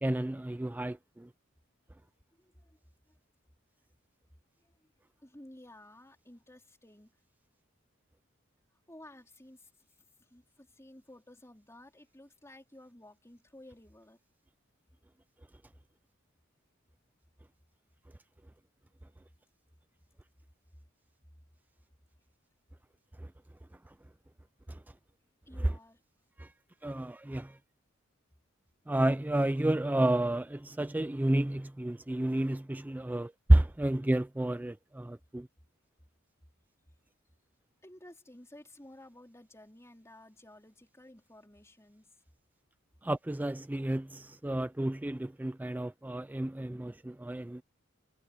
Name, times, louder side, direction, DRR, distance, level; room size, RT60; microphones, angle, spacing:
voice 1, 0.0-1.3 23.2-23.3 23.9-24.0 24.7-24.8 26.4-26.5 26.8-27.6 28.9-35.5 43.0-47.6, right 1 dB, 10° right, 0.3 m, -30 dB
voice 2, 2.0-2.8 3.1-3.2 4.6-4.9 5.2-7.2 8.7-9.7 10.2-14.2 25.5-26.0 37.8-42.1, left 1 dB, 15° left, 4.0 m, -54 dB
head